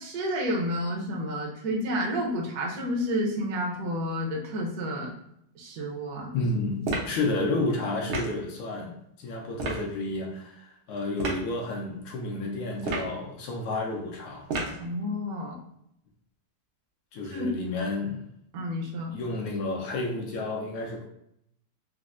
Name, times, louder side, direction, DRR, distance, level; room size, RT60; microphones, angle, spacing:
voice 1, 0.0-5.1 5.6-6.3 14.8-15.6 17.3-17.5 18.5-19.1, equal, 65° right, -1 dB, 0.9 m, -30 dB
voice 2, 6.3-14.5 17.1-18.2 19.1-21.1, left 2 dB, 80° left, 0 dB, 1.5 m, -31 dB
sound 1, 6.8-7.2 8.1-8.4 9.6-9.8 11.2-11.4 12.8-13.2 14.5-14.8, right 3 dB, 85° right, 1.6 m, -30 dB
4.3 x 2.0 x 2.4 m, 0.75 s
omnidirectional pair, 2.3 m